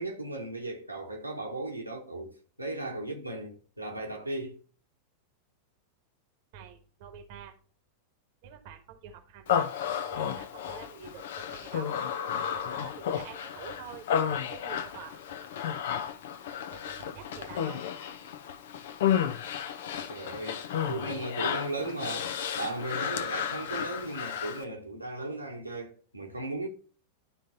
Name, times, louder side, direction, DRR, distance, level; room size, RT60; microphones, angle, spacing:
voice 1, 0.0-4.6 20.1-22.3 22.6-26.7, right 2 dB, 85° right, 1.4 m, -36 dB
voice 2, 6.5-7.5 8.4-9.7 10.1-12.0 12.5-15.2 16.7-17.8, right 7 dB, 50° right, 1.2 m, -47 dB
Human voice, 9.5-24.6, left 8 dB, 55° left, 0.7 m, -32 dB
11.5 x 3.9 x 4.0 m
figure-of-eight pair, 90°, 0 cm